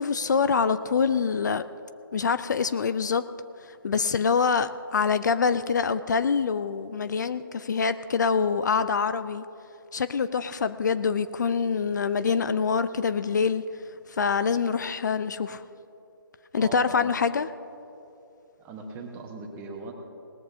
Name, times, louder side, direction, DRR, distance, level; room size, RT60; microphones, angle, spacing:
voice 1, 0.0-1.6 2.1-3.3 3.8-9.5 9.9-13.6 14.1-15.6 16.5-17.5, left 5 dB, 55° left, 13 dB, 0.4 m, -25 dB
voice 2, 16.6-17.1 18.6-19.9, right 3 dB, 15° right, 2 dB, 1.3 m, -39 dB
19.0 x 14.0 x 2.7 m, 2.8 s
figure-of-eight pair, 145°, 12 cm